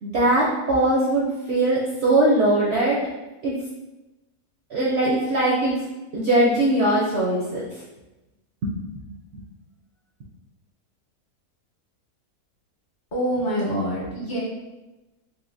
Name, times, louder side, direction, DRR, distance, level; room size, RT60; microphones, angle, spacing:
voice 1, 0.0-3.0 3.4-3.6 4.7-5.8 6.1-7.6 8.6-9.1, right 1 dB, 65° right, -5 dB, 0.7 m, -21 dB
voice 2, 13.1-14.4, equal, 50° left, -7 dB, 1.1 m, -25 dB
3.4 x 2.7 x 2.6 m, 1.0 s
omnidirectional pair, 1.7 m